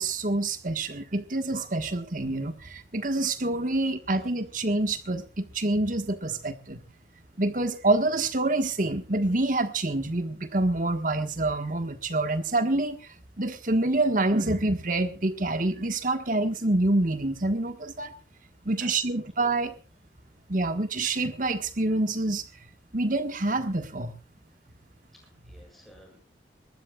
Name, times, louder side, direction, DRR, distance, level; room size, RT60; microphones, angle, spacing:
voice 1, 0.0-6.8 7.4-13.0 13.4-18.1 18.6-19.7 20.5-22.4 22.9-24.1, right 2 dB, 45° right, 9 dB, 1.5 m, -27 dB
voice 2, 18.8-19.2 25.2-26.3, equal, ahead, 0 dB, 7.6 m, -54 dB
22.0 x 19.5 x 2.4 m, 0.32 s
head